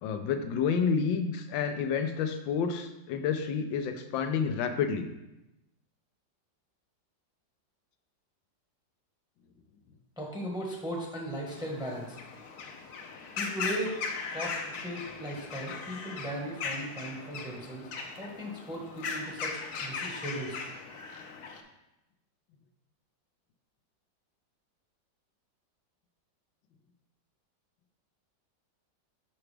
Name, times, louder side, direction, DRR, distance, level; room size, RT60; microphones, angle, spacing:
voice 1, 0.0-5.1, left 6 dB, 85° left, 7 dB, 1.4 m, -29 dB
voice 2, 10.2-12.2 13.4-14.0 14.3-17.9 18.2-20.6, right 1 dB, 5° right, -2 dB, 0.8 m, -37 dB
sound 1, 11.5-21.6, left 5 dB, 65° left, 1.1 m, -38 dB
7.1 x 5.8 x 3.3 m, 0.92 s
omnidirectional pair, 2.0 m